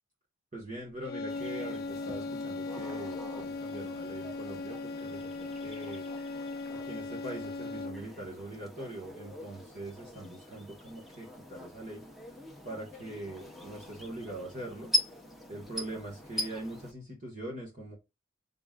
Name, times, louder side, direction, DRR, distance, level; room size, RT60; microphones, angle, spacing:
voice 1, 0.5-6.1 6.8-12.0 12.6-14.9 15.5-18.0, right 1 dB, 35° right, 1.3 m, -42 dB
sound 1, 1.0-8.2, left 3 dB, 45° left, 0.5 m, -38 dB
sound 2, 1.3-16.9, left 2 dB, ahead, 0.8 m, -41 dB
5.9 x 3.7 x 2.3 m
head